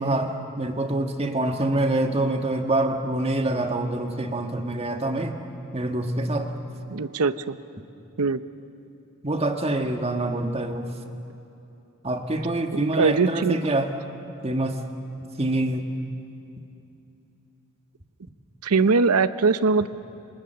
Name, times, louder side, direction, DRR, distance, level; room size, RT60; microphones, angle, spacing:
voice 1, 0.0-5.4 5.7-6.5 9.2-10.9 12.0-13.9 14.4-14.8 15.4-15.9, right 2 dB, 25° right, 5 dB, 1.6 m, -25 dB
voice 2, 6.9-7.6 8.2-8.4 12.7-13.6 18.6-19.9, right 4 dB, 90° right, 13 dB, 0.8 m, -21 dB
27.0 x 25.5 x 6.9 m, 2.8 s
head